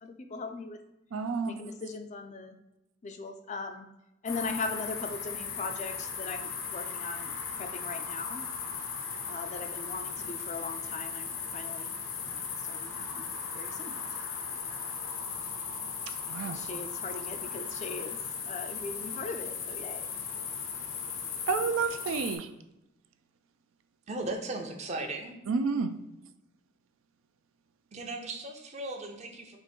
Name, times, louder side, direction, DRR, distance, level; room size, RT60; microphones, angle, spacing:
voice 1, 0.0-0.8 1.5-2.6 3.0-3.9 4.2-8.4 9.3-11.9 12.3-13.9 16.4-18.2 18.5-20.1 25.0-25.1, left 3 dB, 35° left, 6 dB, 0.4 m, -39 dB
voice 2, 1.1-1.6 16.1-16.6 21.5-22.5 25.5-25.9, right 5 dB, 80° right, 8 dB, 0.4 m, -30 dB
sound 1, 4.3-22.4, left 6 dB, 80° left, 0.7 m, -37 dB
voice 3, 24.1-25.4 27.9-29.6, right 2 dB, 35° right, 3 dB, 0.6 m, -37 dB
4.5 x 2.5 x 4.4 m, 0.92 s
head